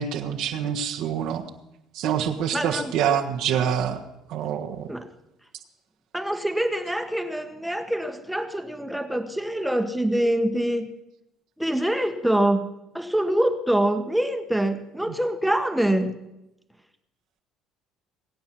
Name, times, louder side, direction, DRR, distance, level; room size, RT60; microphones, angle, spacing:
voice 1, 0.0-1.4 1.9-4.0 4.3-4.9, right 8 dB, 75° right, 3 dB, 1.3 m, -26 dB
voice 2, 2.5-2.9 4.9-5.1 6.1-10.9 11.6-12.7 12.9-16.2, right 1 dB, 5° right, 7 dB, 1.3 m, -25 dB
20.5 x 8.6 x 7.5 m, 0.90 s
supercardioid pair, 90°, 0 cm